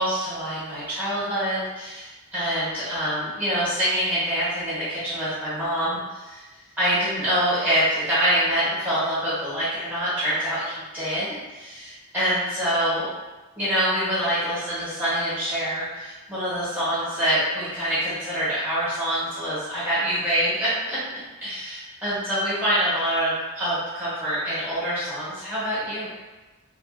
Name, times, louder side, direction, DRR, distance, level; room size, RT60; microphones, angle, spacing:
voice 1, 0.0-6.4 6.8-13.1 13.6-21.1 21.4-26.1, equal, 10° right, -12 dB, 1.1 m, -25 dB
3.0 x 2.5 x 2.5 m, 1.2 s
head